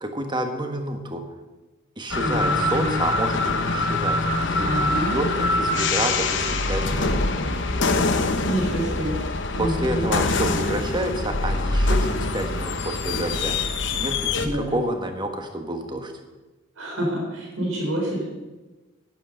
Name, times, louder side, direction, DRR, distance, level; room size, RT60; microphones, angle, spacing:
voice 1, 0.0-1.2 2.0-7.3 9.6-16.1, right 1 dB, 20° right, 5 dB, 1.4 m, -29 dB
sound 1, 2.1-14.5, left 2 dB, 60° left, 1.0 m, -24 dB
voice 2, 2.2-3.0 4.6-5.1 8.4-9.1 9.5-10.1 14.4-14.8 16.8-18.2, right 1 dB, 85° right, -2 dB, 4.0 m, -27 dB
11.0 x 10.0 x 6.5 m, 1.1 s
head